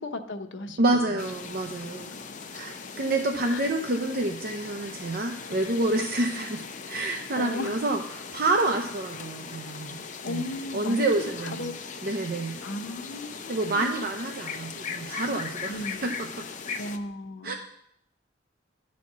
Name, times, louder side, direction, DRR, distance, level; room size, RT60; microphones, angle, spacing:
voice 1, 0.0-1.2 2.1-2.2 3.5-3.7 7.4-7.8 10.2-11.7 12.6-13.9 15.7-16.1 16.8-17.5, left 2 dB, 90° left, 5 dB, 0.9 m, -36 dB
voice 2, 0.8-2.1 2.5-10.0 10.3-11.7 12.0-12.6 13.5-16.5 17.4-17.5, right 2 dB, 55° right, 3 dB, 0.6 m, -28 dB
sound 1, 1.2-17.0, left 5 dB, 40° left, 0.6 m, -39 dB
11.0 x 4.2 x 7.3 m, 0.74 s
head